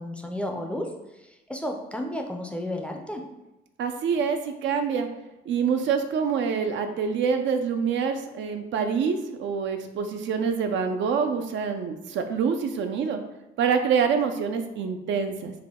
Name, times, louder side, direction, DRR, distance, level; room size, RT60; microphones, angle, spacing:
voice 1, 0.0-3.3, left 1 dB, 5° left, 2 dB, 0.4 m, -33 dB
voice 2, 3.8-5.1 5.5-13.2 13.6-15.5, right 6 dB, 70° right, 6 dB, 0.4 m, -26 dB
3.4 x 2.2 x 3.6 m, 0.99 s
cardioid pair, 90°, 20 cm